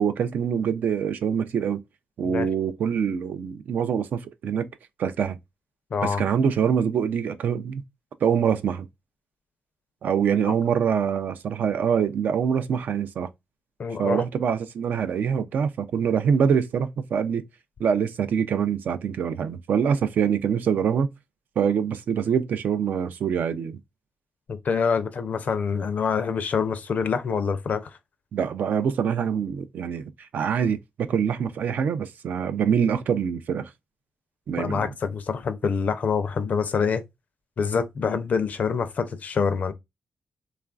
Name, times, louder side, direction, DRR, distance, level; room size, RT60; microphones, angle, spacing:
voice 1, 0.0-1.8 2.2-4.7 5.0-5.4 6.0-7.8 8.2-8.9 10.0-13.3 14.0-17.4 17.8-21.1 21.6-23.8 28.3-33.7 34.5-34.9, right 7 dB, 70° right, 0.4 m, -24 dB
voice 2, 5.9-6.2 13.8-14.2 24.5-28.0 34.6-37.0 37.6-39.7, left 6 dB, 55° left, 0.4 m, -26 dB
3.1 x 2.4 x 2.3 m
cardioid pair, 80°, 3 cm